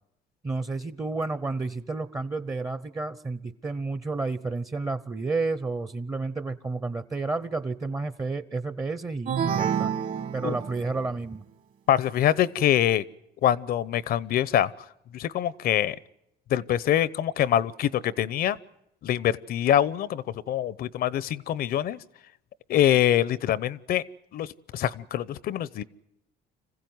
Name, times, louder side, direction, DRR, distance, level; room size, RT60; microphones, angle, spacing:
voice 1, 0.4-9.9 10.3-11.4, right 3 dB, 20° right, 14 dB, 0.8 m, -31 dB
sound 1, 9.3-11.1, right 8 dB, 50° right, 2.0 m, -28 dB
voice 2, 11.9-13.0 13.4-14.7 15.1-16.0 16.5-18.6 19.0-22.0 22.7-24.0 24.3-25.8, left 11 dB, 65° left, 20 dB, 0.8 m, -24 dB
26.0 x 15.5 x 9.5 m, 0.84 s
cardioid pair, 110°, 17 cm